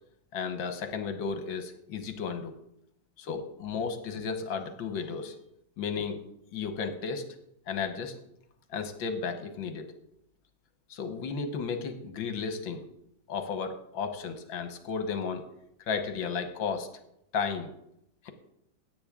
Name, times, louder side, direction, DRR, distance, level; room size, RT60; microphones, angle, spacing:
voice 1, 0.3-2.5 3.2-5.4 5.8-6.2 6.5-7.3 7.7-8.2 8.7-9.9 10.9-12.9 13.3-15.4 15.9-16.9 17.3-17.7 18.2-18.3, left 5 dB, 70° left, 8 dB, 1.8 m, -33 dB
16.5 x 8.7 x 3.7 m, 0.78 s
omnidirectional pair, 2.2 m